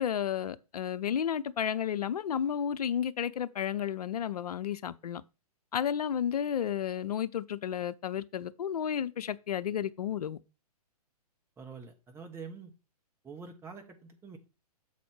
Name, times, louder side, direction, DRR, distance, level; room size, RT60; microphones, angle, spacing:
voice 1, 0.0-5.2 5.7-10.4, left 9 dB, 70° left, 0.6 m, -32 dB
voice 2, 11.6-12.7 13.2-14.4, right 5 dB, 10° right, 1.2 m, -46 dB
7.3 x 4.2 x 6.0 m
hypercardioid pair, 130°, 20 cm